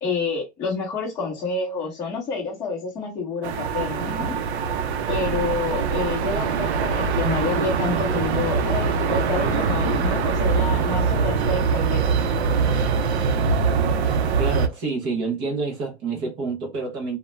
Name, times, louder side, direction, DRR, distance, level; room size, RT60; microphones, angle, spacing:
voice 1, 0.0-4.4 5.1-12.2 13.1-13.2, left 4 dB, 10° left, 0.8 m, -28 dB
sound 1, 3.4-14.7, right 5 dB, 70° right, 0.5 m, -23 dB
voice 2, 14.4-17.2, right 4 dB, 15° right, 0.4 m, -28 dB
2.3 x 2.1 x 2.9 m
hypercardioid pair, 155°, 34 cm